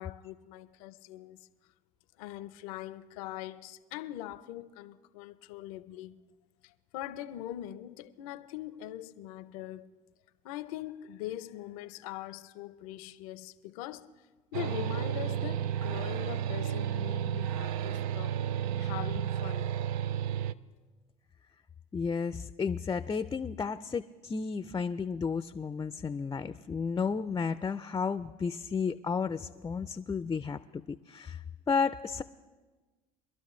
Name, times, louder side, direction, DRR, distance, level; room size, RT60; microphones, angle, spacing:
voice 1, 0.0-1.5 2.2-6.2 6.6-9.9 10.4-14.1 14.5-18.4 18.8-19.7, left 13 dB, 80° left, 0.6 m, -42 dB
sound 1, 14.5-20.5, right 10 dB, 90° right, 0.4 m, -32 dB
voice 2, 21.9-32.2, left 5 dB, 20° left, 0.4 m, -33 dB
24.0 x 12.5 x 3.2 m
supercardioid pair, 80°, 18 cm